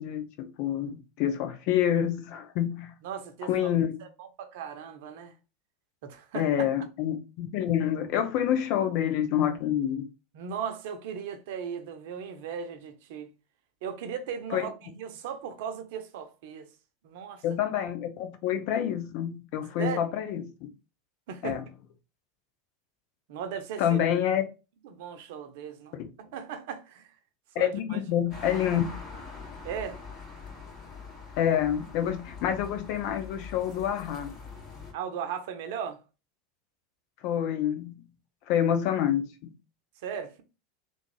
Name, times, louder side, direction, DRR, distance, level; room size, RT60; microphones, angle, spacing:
voice 1, 0.0-2.9 3.5-3.9 6.3-10.1 14.5-14.7 17.4-20.7 21.4-21.6 23.8-24.4 26.0-26.1 27.5-28.8 31.4-34.3 37.2-38.0 38.5-39.5, left 10 dB, 55° left, 0.7 m, -27 dB
voice 2, 3.0-3.7 4.0-5.3 6.0-6.4 10.3-13.3 13.8-16.7 17.0-17.4 19.8-20.0 21.3-21.6 23.3-24.0 24.8-27.2 27.5-28.0 29.6-30.0 34.9-36.0 40.0-40.4, right 7 dB, 60° right, 0.7 m, -37 dB
sound 1, 28.3-34.9, left 5 dB, 35° left, 2.1 m, -43 dB
3.6 x 2.5 x 3.2 m
figure-of-eight pair, 80°, 0 cm